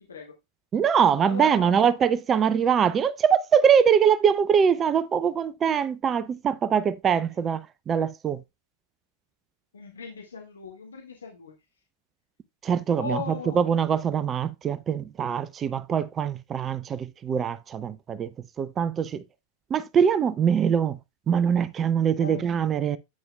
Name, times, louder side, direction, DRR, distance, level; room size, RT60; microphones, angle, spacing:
voice 1, 0.7-8.4 12.6-18.3 18.6-19.2 19.7-21.0 21.3-23.0, right 7 dB, 25° right, 0.6 m, -23 dB
voice 2, 1.2-1.9 9.7-11.5 13.0-13.6 22.2-22.5, left 5 dB, 70° left, 2.0 m, -37 dB
10.5 x 8.7 x 2.2 m
figure-of-eight pair, 90°, 0 cm